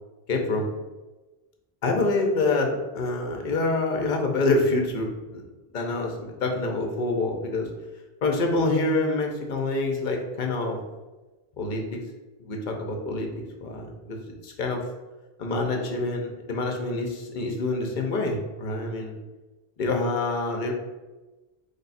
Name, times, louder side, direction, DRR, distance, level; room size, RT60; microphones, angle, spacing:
voice 1, 0.3-0.7 1.8-5.4 5.7-7.7 8.2-10.8 11.6-12.0 12.4-13.3 13.6-14.8 15.4-19.2 19.8-20.7, left 2 dB, 55° left, 2 dB, 0.7 m, -26 dB
3.3 x 2.3 x 4.0 m, 1.1 s
omnidirectional pair, 1.1 m